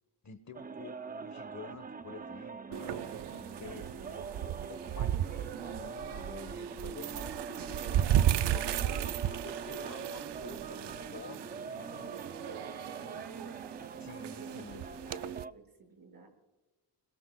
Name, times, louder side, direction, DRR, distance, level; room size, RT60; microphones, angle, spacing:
voice 1, 0.2-3.8 4.5-8.0 8.5-12.2 14.0-14.8, left 4 dB, 45° left, 11 dB, 1.3 m, -49 dB
sound 1, 0.5-15.5, right 5 dB, 20° right, 0.5 m, -44 dB
sound 2, 2.7-15.4, right 11 dB, 80° right, 0.6 m, -35 dB
voice 2, 3.6-5.1 8.8-9.1 12.2-13.6 14.2-16.3, right 4 dB, 60° right, 2 dB, 6.2 m, -51 dB
29.0 x 21.0 x 2.3 m, 1.2 s
wide cardioid pair, 105°, 40 cm